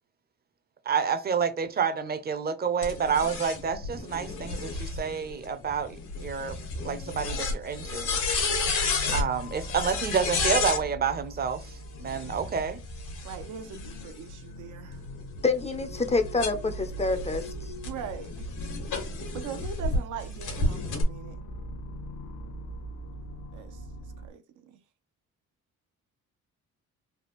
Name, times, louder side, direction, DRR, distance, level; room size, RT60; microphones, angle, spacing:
voice 1, 0.9-6.6 6.8-8.2 9.1-12.8, right 6 dB, 30° right, 0.5 m, -29 dB
sound 1, 2.8-10.8 12.0-14.3 14.9-20.0 20.4-21.0, left 3 dB, 85° left, 1.3 m, -32 dB
sound 2, 7.6-24.3, equal, 60° left, 0.8 m, -41 dB
voice 2, 13.2-15.0 17.8-18.5 19.3-21.4 23.5-23.8 24.2-24.8, right 8 dB, 80° right, 0.6 m, -40 dB
voice 3, 15.4-17.7, left 3 dB, 20° left, 0.4 m, -27 dB
3.4 x 2.3 x 2.9 m
cardioid pair, 90°, 30 cm